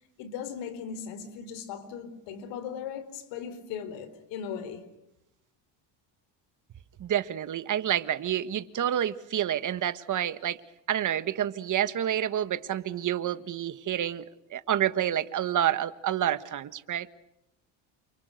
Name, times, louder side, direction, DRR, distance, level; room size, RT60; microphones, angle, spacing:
voice 1, 0.2-4.8, left 7 dB, 90° left, 4.3 m, -38 dB
voice 2, 7.0-10.6 10.9-14.3 14.5-17.1, right 10 dB, 45° right, 1.6 m, -28 dB
29.5 x 27.5 x 6.5 m
cardioid pair, 125°, 43 cm